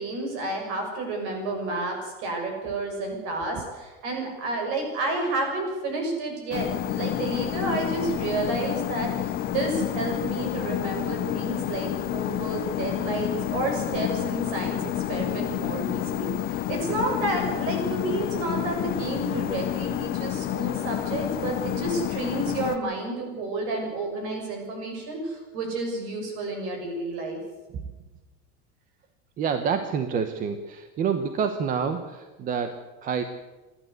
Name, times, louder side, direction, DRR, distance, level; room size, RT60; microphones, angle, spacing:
voice 1, 0.0-27.4, right 2 dB, 50° right, 3 dB, 7.0 m, -30 dB
sound 1, 6.5-22.8, left 12 dB, 30° left, 0.9 m, -29 dB
voice 2, 29.4-33.2, right 6 dB, 30° right, 8 dB, 1.0 m, -28 dB
28.5 x 12.0 x 8.2 m, 1.2 s
cardioid pair, 175°, 30 cm